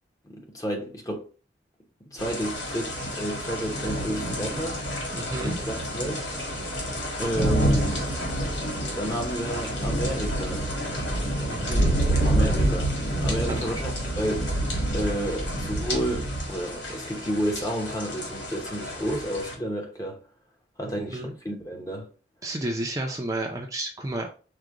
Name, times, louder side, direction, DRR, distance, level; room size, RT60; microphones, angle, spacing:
voice 1, 0.2-1.3 2.0-4.8 5.4-6.2 7.2-8.1 8.9-10.7 12.2-12.9 13.2-14.6 14.9-20.2 20.8-22.1, equal, 20° left, 0.8 m, -31 dB
sound 1, 2.2-19.5, right 1 dB, 80° left, 1.8 m, -28 dB
voice 2, 5.1-5.6 11.5-11.9 13.5-13.8 20.9-21.3 22.4-24.3, right 1 dB, 20° right, 0.5 m, -31 dB
5.0 x 2.2 x 4.6 m
head